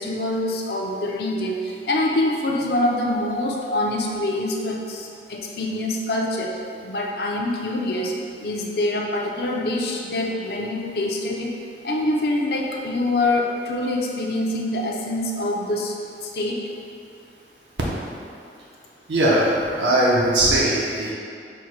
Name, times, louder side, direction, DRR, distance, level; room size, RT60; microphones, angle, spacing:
voice 1, 0.0-6.5 6.8-8.2 8.4-11.6 11.8-15.9 16.2-16.6, left 1 dB, 60° left, -1 dB, 0.5 m, -25 dB
voice 2, 19.1-19.5 19.8-21.1, right 1 dB, 85° right, -5 dB, 0.6 m, -19 dB
4.3 x 2.1 x 4.5 m, 2.5 s
head